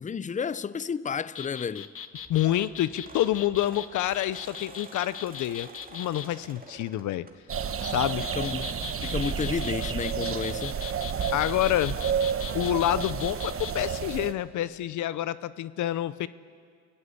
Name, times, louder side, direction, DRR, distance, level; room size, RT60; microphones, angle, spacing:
voice 1, 0.0-1.9 8.2-10.8, left 6 dB, 25° left, 0.6 m, -32 dB
sound 1, 1.3-6.3 7.6-13.7, left 8 dB, 45° left, 1.0 m, -40 dB
sound 2, 2.1-7.8 8.2-8.5 9.7-9.8 10.0-10.2 10.5-10.6, right 4 dB, 30° right, 2.3 m, -49 dB
voice 2, 2.3-7.3 7.8-8.2 11.3-12.0 12.5-16.3, left 13 dB, 75° left, 0.7 m, -28 dB
sound 3, 7.5-14.3, right 7 dB, 45° right, 1.3 m, -31 dB
29.5 x 16.5 x 8.3 m
cardioid pair, 90°, 30 cm